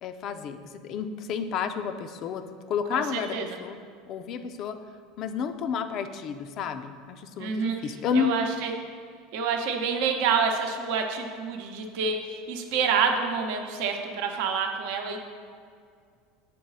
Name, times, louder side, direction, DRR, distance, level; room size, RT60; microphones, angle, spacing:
voice 1, 0.0-2.4 2.7-3.8 4.1-4.8 5.2-8.3, left 7 dB, 50° left, 9 dB, 0.5 m, -31 dB
voice 2, 2.9-3.4 7.4-7.8 8.1-8.7 9.3-15.2, right 6 dB, 70° right, 3 dB, 0.7 m, -27 dB
7.6 x 3.9 x 5.4 m, 2.2 s
hypercardioid pair, 95°, 0 cm